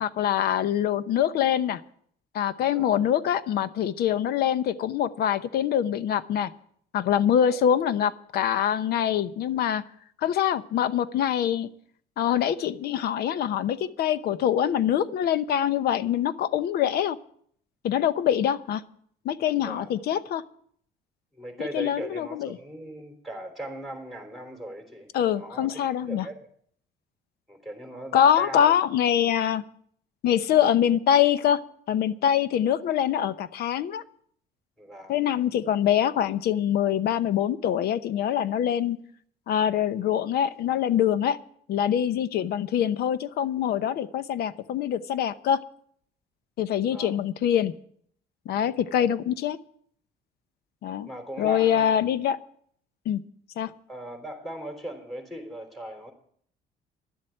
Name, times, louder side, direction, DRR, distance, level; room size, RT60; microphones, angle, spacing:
voice 1, 0.0-1.8 2.3-6.5 6.9-9.8 10.2-11.7 12.2-17.2 17.8-18.8 19.2-20.4 21.6-22.6 25.1-26.3 28.1-29.6 30.2-31.6 31.9-34.0 35.1-39.0 39.5-41.4 41.7-45.6 46.6-47.7 48.5-49.6 50.8-51.1 51.4-52.4 53.1-53.2 53.6-53.7, left 9 dB, 70° left, 14 dB, 0.9 m, -24 dB
voice 2, 21.3-26.5 27.5-28.7 34.8-35.2 46.8-47.2 48.9-49.0 51.1-51.9 53.9-56.1, right 1 dB, ahead, 4 dB, 3.5 m, -39 dB
12.0 x 7.7 x 9.9 m, 0.62 s
cardioid pair, 110°, 17 cm